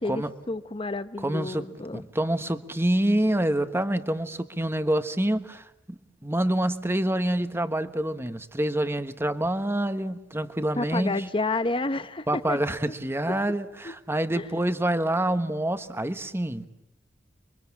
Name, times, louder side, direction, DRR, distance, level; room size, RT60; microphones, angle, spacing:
voice 1, 0.0-2.0 10.8-12.6 13.8-13.9 14.3-14.5, left 2 dB, 30° left, 1.0 m, -30 dB
voice 2, 1.2-1.6 1.9-11.2 12.3-16.7, right 1 dB, 15° right, 1.3 m, -27 dB
29.5 x 24.0 x 8.5 m
head